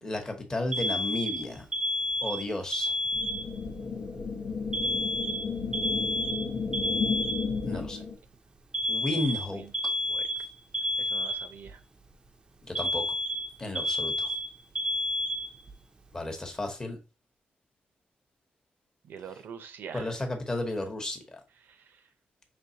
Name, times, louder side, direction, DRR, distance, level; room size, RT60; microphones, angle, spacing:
voice 1, 0.0-1.7 2.2-2.9 7.7-8.0 8.9-9.6 12.6-13.0 13.6-14.3 16.1-17.0 19.9-21.4, left 2 dB, 20° left, 0.9 m, -33 dB
Alarm, 0.7-3.7 4.7-7.7 8.7-11.7 12.7-15.7, left 1 dB, 25° right, 0.4 m, -30 dB
sound 1, 3.1-8.1, left 5 dB, 90° left, 1.0 m, -33 dB
voice 2, 7.7-8.1 9.1-9.2 9.5-9.7 10.1-10.3 11.0-11.8 19.0-20.1 21.6-22.0, right 7 dB, 75° right, 0.6 m, -45 dB
5.2 x 3.2 x 2.7 m
wide cardioid pair, 155°, 4 cm